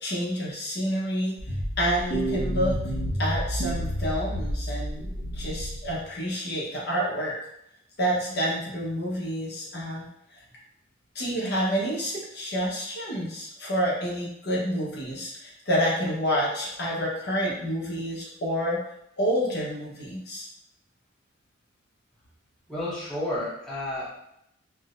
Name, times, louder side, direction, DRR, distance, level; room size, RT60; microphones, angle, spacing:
voice 1, 0.0-1.3 1.8-2.8 3.2-7.3 8.0-10.1 11.1-18.8 19.2-20.5, equal, 55° left, -5 dB, 1.0 m, -28 dB
sound 1, 1.4-6.1, equal, 80° left, 1.3 m, -30 dB
voice 2, 22.7-24.1, left 1 dB, 5° left, -9 dB, 0.8 m, -31 dB
4.6 x 2.1 x 2.5 m, 0.78 s
head